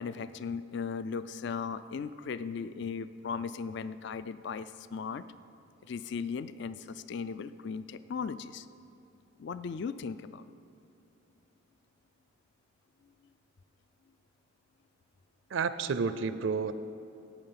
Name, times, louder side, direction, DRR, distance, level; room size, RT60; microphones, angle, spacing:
voice 1, 0.0-5.2 5.9-8.7 9.4-10.5, left 5 dB, 55° left, 14 dB, 0.3 m, -37 dB
voice 2, 15.5-16.7, right 5 dB, 65° right, 13 dB, 0.5 m, -30 dB
14.5 x 8.8 x 5.8 m, 2.8 s
head